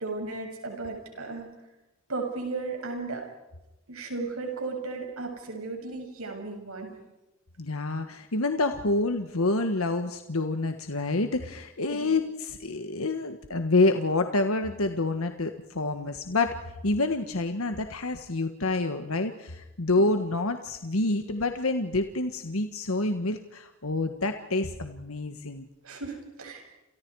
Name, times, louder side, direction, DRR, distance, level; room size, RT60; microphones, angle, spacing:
voice 1, 0.0-1.5 2.1-3.3 3.9-6.9 11.9-12.1 20.0-20.1 25.8-26.7, right 3 dB, 90° right, 3 dB, 7.0 m, -35 dB
voice 2, 7.6-16.5 16.8-25.7, left 2 dB, 85° left, 7 dB, 1.5 m, -27 dB
29.5 x 28.5 x 4.8 m, 0.95 s
head